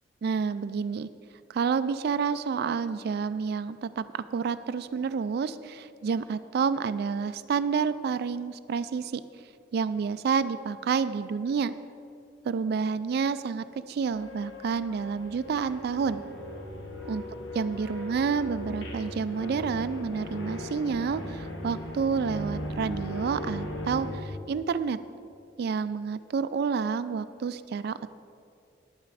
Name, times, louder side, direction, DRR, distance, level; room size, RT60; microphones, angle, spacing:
voice 1, 0.2-1.1 1.5-9.2 9.7-11.7 12.5-16.2 17.1-17.2 17.5-25.0 25.6-28.1, right 5 dB, 60° right, 12 dB, 0.3 m, -29 dB
sound 1, 14.1-24.2, left 1 dB, 80° left, 1.5 m, -38 dB
10.5 x 9.1 x 4.8 m, 2.4 s
head